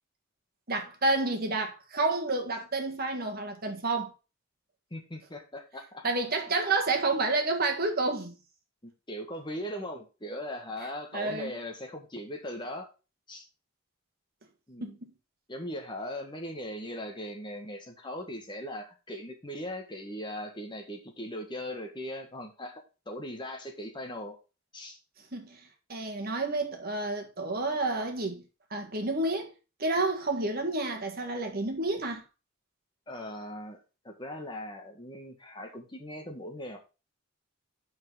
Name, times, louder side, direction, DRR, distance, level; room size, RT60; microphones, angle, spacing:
voice 1, 0.7-4.1 6.0-8.3 11.1-11.5 14.8-15.1 25.3-25.6 25.9-28.4 28.7-29.5 29.8-32.2, right 2 dB, 45° right, 1.7 m, -29 dB
voice 2, 4.9-6.0 8.8-12.9 13.3-13.5 14.7-15.0 15.5-24.4 24.7-25.0 33.1-36.8, left 1 dB, 20° left, 1.6 m, -39 dB
5.8 x 5.6 x 5.5 m
head